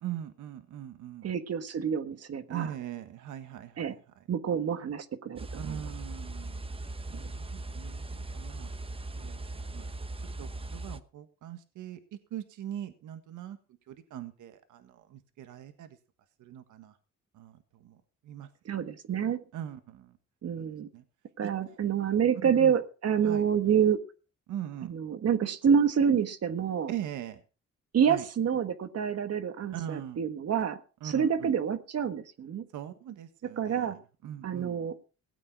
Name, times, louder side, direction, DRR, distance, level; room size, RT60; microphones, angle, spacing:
voice 1, 0.0-1.3 2.5-4.0 5.5-6.7 7.3-8.7 9.2-9.9 10.4-12.0 12.3-13.6 13.9-16.0 16.4-17.0 17.3-18.5 19.5-20.2 20.6-20.7 20.9-21.0 21.4-21.8 22.3-22.8 23.2-23.4 24.5-24.9 26.9-27.4 28.1-28.2 29.7-30.2 31.0-31.5 32.7-34.8, right 11 dB, 80° right, 9 dB, 1.6 m, -41 dB
voice 2, 1.2-2.7 3.8-4.0 4.3-5.8 7.1-7.3 18.6-19.4 20.4-20.9 21.4-24.0 24.9-26.9 27.9-32.7 33.6-34.0 34.4-35.0, right 7 dB, 55° right, 9 dB, 1.5 m, -28 dB
sound 1, 5.4-11.0, right 2 dB, 20° right, 1.0 m, -39 dB
17.0 x 8.7 x 4.7 m, 0.35 s
cardioid pair, 90°, 30 cm